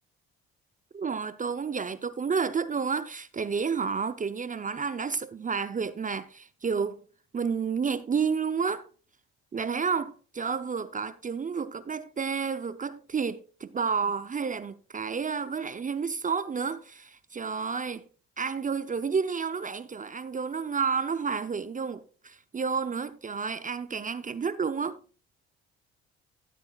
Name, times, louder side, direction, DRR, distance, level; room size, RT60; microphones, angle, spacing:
voice 1, 0.9-7.0 7.3-8.9 9.5-18.0 18.4-25.0, right 5 dB, 25° right, 0.6 m, -30 dB
16.0 x 8.2 x 2.3 m
hypercardioid pair, 65°, 31 cm